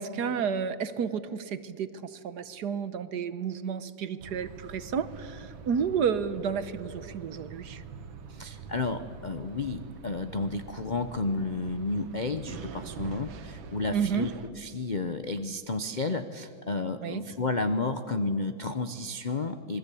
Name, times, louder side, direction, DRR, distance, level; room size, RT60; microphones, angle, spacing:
voice 1, 0.0-7.8 13.9-14.3 17.0-17.2, right 7 dB, 60° right, 13 dB, 1.4 m, -31 dB
sound 1, 4.2-14.5, right 6 dB, 85° right, 2.0 m, -45 dB
voice 2, 8.3-14.3 14.6-19.8, left 3 dB, 60° left, 9 dB, 0.4 m, -32 dB
26.5 x 21.5 x 8.4 m, 2.3 s
omnidirectional pair, 2.1 m